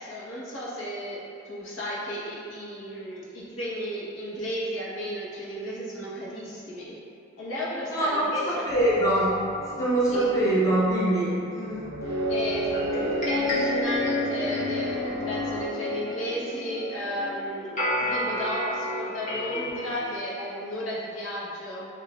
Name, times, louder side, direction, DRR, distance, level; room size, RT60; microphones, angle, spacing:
voice 1, 0.0-7.0 7.4-8.7 10.1-10.4 12.3-21.9, equal, 80° left, -7 dB, 1.0 m, -34 dB
voice 2, 7.9-9.3 9.8-11.9, right 1 dB, 15° left, -8 dB, 0.6 m, -24 dB
sound 1, 8.7-15.6, right 1 dB, 80° right, 0.5 m, -40 dB
sound 2, 12.0-20.1, left 1 dB, 40° left, 1.0 m, -29 dB
6.6 x 2.5 x 2.4 m, 2.6 s
head